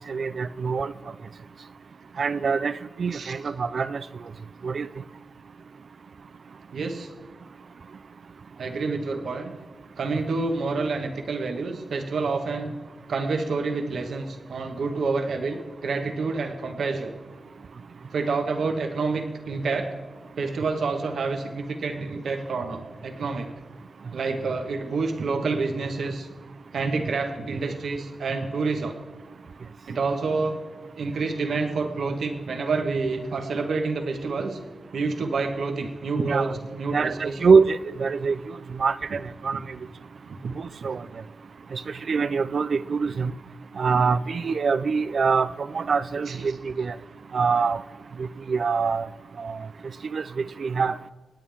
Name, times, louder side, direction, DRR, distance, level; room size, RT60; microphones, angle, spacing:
voice 1, 0.1-0.9 2.2-2.7 3.0-4.0 4.6-4.9 36.2-36.6 36.9-38.4 38.8-39.6 40.6-41.0 41.7-41.8 42.1-43.3 43.8-46.9 47.3-47.8 48.2-49.1 49.4-49.6 50.1-50.2 50.6-51.0, right 5 dB, 65° right, 15 dB, 0.5 m, -24 dB
voice 2, 6.7-7.1 8.6-9.6 10.0-12.7 13.1-17.1 18.1-19.9 20.4-23.5 24.1-26.3 26.7-28.9 29.9-30.6 31.0-34.6 34.9-37.4 40.8-40.9 46.3-46.5, right 4 dB, 85° right, 4 dB, 1.4 m, -28 dB
27.0 x 9.4 x 3.6 m, 1.4 s
wide cardioid pair, 90°, 0 cm